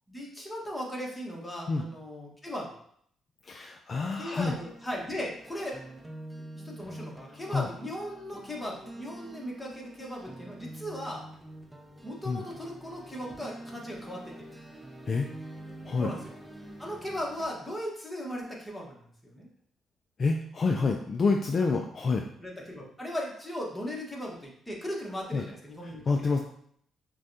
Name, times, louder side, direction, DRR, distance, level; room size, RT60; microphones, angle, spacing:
voice 1, 0.1-2.7 4.1-5.8 6.6-11.2 12.0-14.3 16.0-16.3 16.8-19.5 20.6-21.0 21.6-21.8 22.4-26.3, equal, 10° left, -2 dB, 1.2 m, -37 dB
voice 2, 3.5-4.5 7.5-7.7 12.3-12.4 15.1-15.3 15.9-16.1 20.2-22.3 25.3-25.4 25.8-26.4, left 4 dB, 45° left, 3 dB, 0.3 m, -28 dB
sound 1, 4.4-17.4, right 1 dB, 10° right, 0.7 m, -46 dB
6.0 x 2.3 x 2.7 m, 0.66 s
cardioid pair, 85°, 0 cm